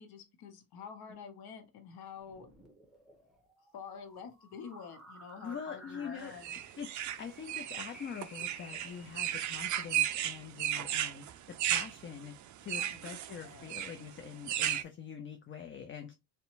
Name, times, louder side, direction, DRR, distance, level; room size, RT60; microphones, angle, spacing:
voice 1, 0.0-2.5 3.7-6.5 12.7-13.7, left 6 dB, 55° left, 0.8 m, -48 dB
sound 1, 2.2-9.6, equal, ahead, 0.9 m, -55 dB
voice 2, 5.4-6.3 6.8-12.3 12.6-16.1, left 7 dB, 30° left, 0.4 m, -44 dB
sound 2, 6.4-14.8, right 11 dB, 45° right, 0.4 m, -34 dB
2.7 x 2.2 x 2.5 m
hypercardioid pair, 60°, 45 cm